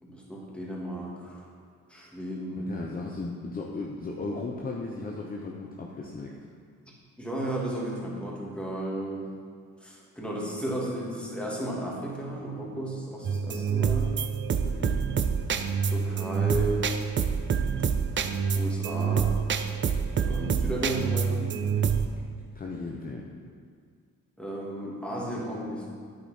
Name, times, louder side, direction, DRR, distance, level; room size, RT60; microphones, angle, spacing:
voice 1, 0.0-1.5 1.9-2.7 6.9-9.3 9.8-14.3 15.8-16.9 18.5-19.3 20.2-21.8 24.4-25.9, right 1 dB, 5° left, -4 dB, 2.5 m, -34 dB
voice 2, 2.5-6.4 14.6-15.0 22.5-23.3, left 3 dB, 30° left, -1 dB, 0.9 m, -36 dB
sound 1, 13.2-22.1, right 6 dB, 40° right, 0.6 m, -27 dB
8.8 x 8.0 x 4.4 m, 2.1 s
cardioid pair, 90°, 30 cm